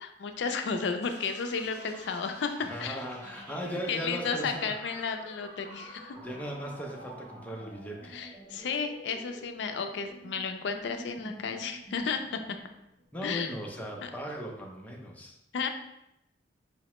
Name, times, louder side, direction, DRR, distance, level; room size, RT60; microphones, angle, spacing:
voice 1, 0.0-2.5 2.8-3.0 3.9-6.2 8.1-12.2 12.5-12.6 13.2-13.5 14.0-14.1 15.5-15.7, left 5 dB, 75° left, 6 dB, 0.4 m, -33 dB
sound 1, 1.0-14.6, right 1 dB, 45° right, 1.2 m, -49 dB
voice 2, 2.6-5.0 6.2-8.2 13.1-15.4, equal, 10° left, 0 dB, 0.5 m, -38 dB
4.7 x 2.1 x 2.9 m, 0.84 s
head